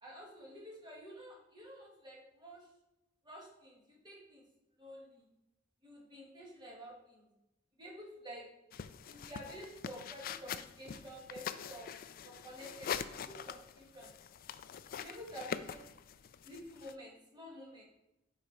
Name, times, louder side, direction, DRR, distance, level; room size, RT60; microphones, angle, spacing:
voice 1, 0.0-2.7 3.2-4.5 4.8-5.3 5.8-7.3 7.8-8.5 9.1-12.0 12.2-14.2 14.9-15.8 16.4-17.8, equal, 25° right, -2 dB, 1.7 m, -50 dB
sound 1, 8.7-16.9, left 8 dB, 50° left, 0.3 m, -44 dB
6.4 x 5.0 x 4.4 m, 0.92 s
head